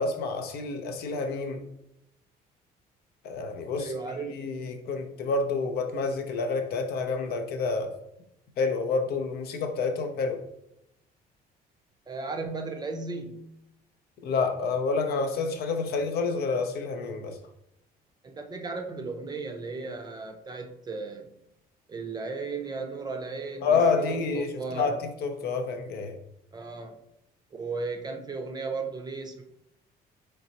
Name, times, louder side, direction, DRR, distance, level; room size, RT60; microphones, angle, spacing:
voice 1, 0.0-1.6 3.2-3.9 4.3-8.0 8.6-10.4 14.2-17.4 23.6-25.0 25.2-26.2, left 4 dB, 70° left, 6 dB, 0.6 m, -28 dB
voice 2, 3.8-4.4 12.1-13.5 18.2-21.3 21.9-24.9 26.5-27.0 27.5-29.4, right 4 dB, 25° right, 4 dB, 0.4 m, -35 dB
4.0 x 3.2 x 2.8 m, 0.80 s
cardioid pair, 110°, 17 cm